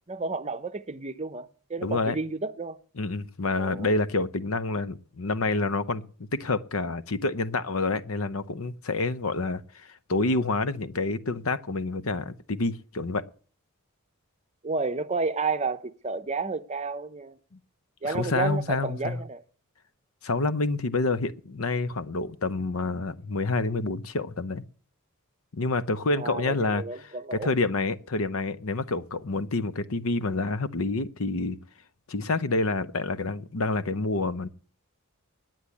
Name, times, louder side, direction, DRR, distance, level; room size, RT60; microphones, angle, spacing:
voice 1, 0.1-2.8 3.6-4.0 14.6-17.4 18.0-19.4 26.2-27.5, right 4 dB, 30° right, 0.7 m, -31 dB
voice 2, 1.8-2.2 3.0-13.2 17.5-17.6 18.0-19.2 20.2-24.6 25.5-26.8 27.3-31.6 32.1-34.5, left 3 dB, 75° left, 0.8 m, -28 dB
9.9 x 9.1 x 8.4 m
head